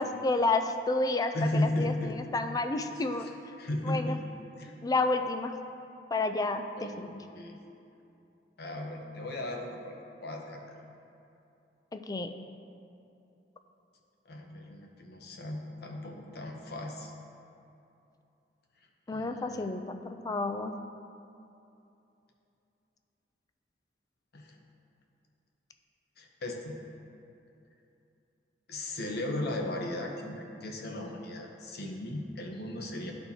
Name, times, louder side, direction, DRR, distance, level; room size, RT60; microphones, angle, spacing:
voice 1, 0.0-3.3 3.8-4.2 4.8-5.5 6.1-7.2 11.9-12.3 19.1-20.7, left 3 dB, 20° left, 7 dB, 0.3 m, -30 dB
voice 2, 1.3-2.2 2.9-4.2 4.5-4.7 6.8-7.6 8.6-10.0 10.2-10.8 14.3-17.1 19.1-19.6 24.3-24.6 26.2-26.8 28.7-33.1, left 1 dB, 65° left, 1 dB, 0.8 m, -36 dB
13.0 x 4.3 x 2.8 m, 2.8 s
head